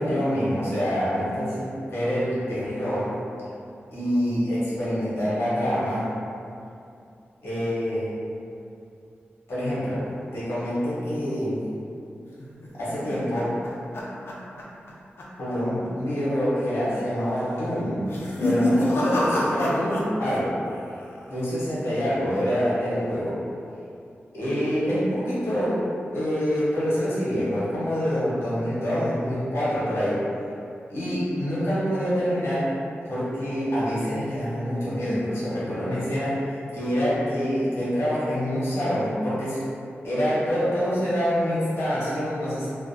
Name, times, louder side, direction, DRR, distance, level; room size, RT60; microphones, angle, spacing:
voice 1, 0.0-3.1 3.9-6.0 7.4-8.1 9.5-10.1 10.3-11.7 12.8-13.5 15.4-18.1 18.4-20.5 21.3-23.4 24.3-25.8 26.1-30.2 30.9-32.7 33.0-39.6 40.0-42.7, equal, 90° left, -10 dB, 0.8 m, -26 dB
sound 1, 12.4-14.9 15.2-15.5 15.8-15.9 16.7-17.1 18.0-20.4 20.7-21.2, left 1 dB, 70° left, 0.4 m, -27 dB
2.4 x 2.1 x 2.6 m, 2.6 s
wide cardioid pair, 140°, 4 cm